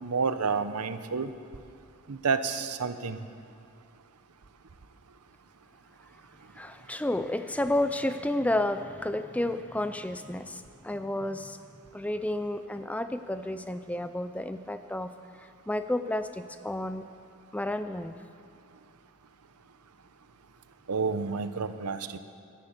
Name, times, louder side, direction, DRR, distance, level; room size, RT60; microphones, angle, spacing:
voice 1, 0.0-1.3 2.1-3.2 20.9-22.2, right 5 dB, 90° right, 11 dB, 0.7 m, -29 dB
voice 2, 6.6-11.6 11.9-15.1 15.4-17.0 17.5-18.1, left 1 dB, 5° left, 10 dB, 0.3 m, -31 dB
13.0 x 11.5 x 7.3 m, 2.5 s
head